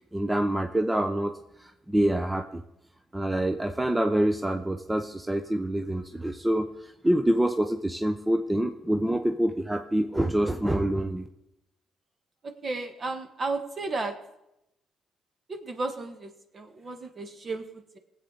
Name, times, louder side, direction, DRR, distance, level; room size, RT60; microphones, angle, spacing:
voice 1, 0.1-2.6 3.1-11.2, right 1 dB, 10° right, 6 dB, 0.7 m, -26 dB
voice 2, 12.4-14.1 15.5-18.0, right 3 dB, 40° right, 6 dB, 1.5 m, -34 dB
19.0 x 7.9 x 4.0 m, 0.88 s
cardioid pair, 90°, 0 cm